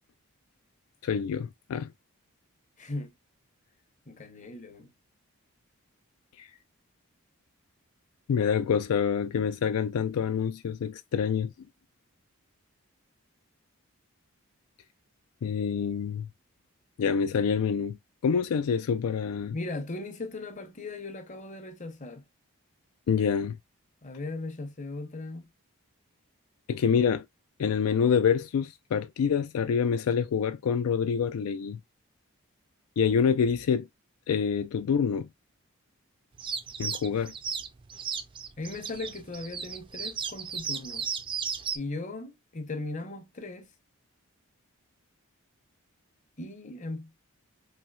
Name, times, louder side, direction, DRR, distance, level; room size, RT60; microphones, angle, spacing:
voice 1, 1.0-1.9 6.4-6.5 8.3-11.5 15.4-16.3 17.0-18.0 18.2-19.6 23.1-23.6 26.7-27.2 27.6-31.8 33.0-33.9 34.3-35.3 36.8-37.3, left 6 dB, 80° left, 0.3 m, -26 dB
voice 2, 2.8-3.1 4.1-4.9 19.5-22.2 24.0-25.5 38.6-41.1 41.7-43.7 46.4-47.1, left 2 dB, 35° left, 0.8 m, -38 dB
sound 1, 36.4-41.8, right 6 dB, 20° right, 0.3 m, -35 dB
4.3 x 3.0 x 2.2 m
head